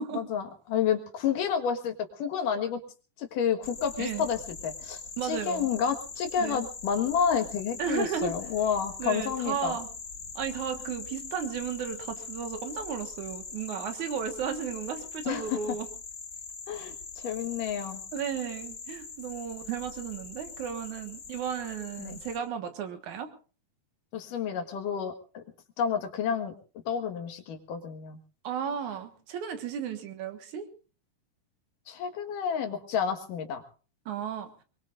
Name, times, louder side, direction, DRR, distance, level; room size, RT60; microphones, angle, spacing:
voice 1, 0.1-2.8 3.2-9.8 15.3-15.6 16.7-18.0 22.0-22.2 24.1-25.4 25.8-26.5 26.9-28.2 31.9-33.6, left 7 dB, 70° left, 6 dB, 3.1 m, -30 dB
sound 1, 3.6-22.4, left 5 dB, 35° left, 2.4 m, -42 dB
voice 2, 5.2-5.7 6.4-6.6 7.8-8.3 9.0-9.9 10.4-15.9 18.1-23.3 28.4-30.7 34.1-34.5, right 7 dB, 65° right, 7 dB, 2.7 m, -34 dB
23.5 x 22.0 x 2.5 m, 0.36 s
omnidirectional pair, 4.0 m